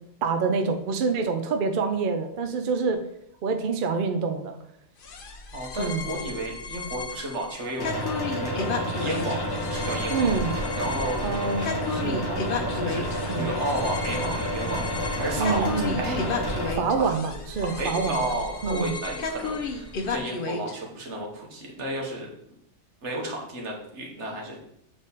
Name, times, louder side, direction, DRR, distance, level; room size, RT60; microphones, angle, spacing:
voice 1, 0.2-3.0 3.4-4.6 5.8-6.1 10.1-10.5 11.2-13.0 13.3-13.5 15.4-16.0 16.7-18.3 18.6-18.9, right 5 dB, 55° right, 6 dB, 0.7 m, -27 dB
sound 1, 5.0-20.7, left 4 dB, 55° left, 0.8 m, -34 dB
voice 2, 5.5-7.9 8.3-8.7 9.0-10.3 10.7-11.3 11.6-11.7 12.8-13.0 13.3-14.8 15.2-16.2 17.0-17.1 17.7-22.3 23.0-24.6, right 1 dB, 75° right, 0 dB, 1.5 m, -32 dB
sound 2, 7.8-16.7, equal, 25° left, 0.7 m, -30 dB
sound 3, 10.4-20.2, right 1 dB, 30° right, 1.1 m, -43 dB
7.2 x 3.5 x 4.0 m, 0.75 s
omnidirectional pair, 1.2 m